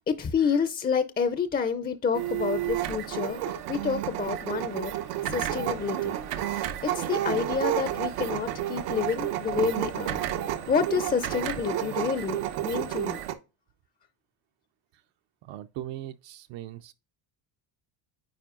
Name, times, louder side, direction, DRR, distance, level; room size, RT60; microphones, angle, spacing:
voice 1, 0.0-4.9 5.3-6.2 6.5-10.2 10.7-12.4 12.6-13.2, left 6 dB, 20° left, 0.4 m, -29 dB
sound 1, 2.1-13.3, right 12 dB, 90° right, 1.0 m, -31 dB
voice 2, 15.4-16.9, right 13 dB, 65° right, 0.6 m, -39 dB
9.2 x 4.5 x 2.4 m
cardioid pair, 120°, 49 cm